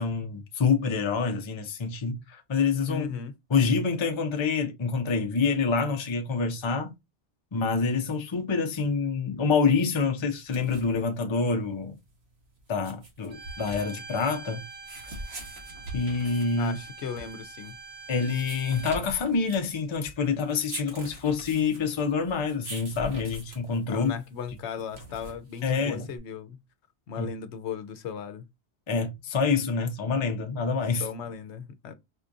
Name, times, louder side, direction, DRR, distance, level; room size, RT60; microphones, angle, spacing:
voice 1, 0.0-3.1 3.5-6.9 7.5-12.0 12.7-14.6 15.9-16.7 18.1-24.1 25.6-26.1 27.2-27.3 28.9-31.1, left 5 dB, 35° left, 0.5 m, -27 dB
voice 2, 2.9-3.3 16.6-17.8 23.9-26.6 27.1-28.5 31.0-31.9, left 7 dB, 75° left, 0.9 m, -37 dB
sound 1, 10.3-26.2, right 1 dB, 65° right, 1.4 m, -44 dB
Bowed string instrument, 13.3-19.0, right 4 dB, 40° right, 0.8 m, -44 dB
4.5 x 2.4 x 2.6 m
omnidirectional pair, 1.2 m